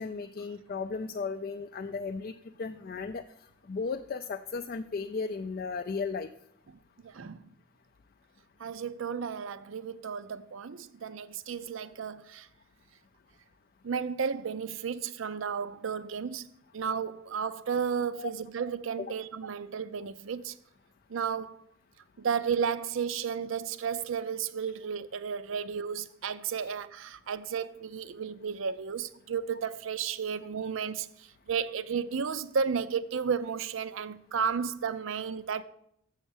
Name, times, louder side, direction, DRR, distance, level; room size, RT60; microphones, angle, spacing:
voice 1, 0.0-2.3 2.6-3.2 3.7-6.3 18.2-18.3 19.0-19.1, left 4 dB, 45° left, 0.3 m, -35 dB
voice 2, 7.0-7.5 8.6-12.5 13.8-16.5 16.7-20.5 21.1-21.6 22.2-35.6, right 6 dB, 65° right, 0.5 m, -33 dB
7.2 x 7.0 x 7.2 m
head